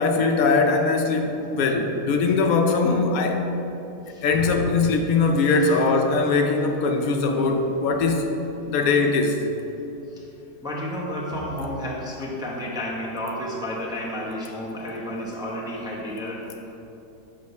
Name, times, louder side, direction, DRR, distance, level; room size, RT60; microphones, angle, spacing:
voice 1, 0.0-3.4 4.2-8.3 8.7-9.4, left 4 dB, 80° left, 4 dB, 1.1 m, -21 dB
voice 2, 10.6-16.8, equal, 5° right, -4 dB, 0.6 m, -31 dB
6.5 x 3.9 x 5.3 m, 2.9 s
omnidirectional pair, 1.5 m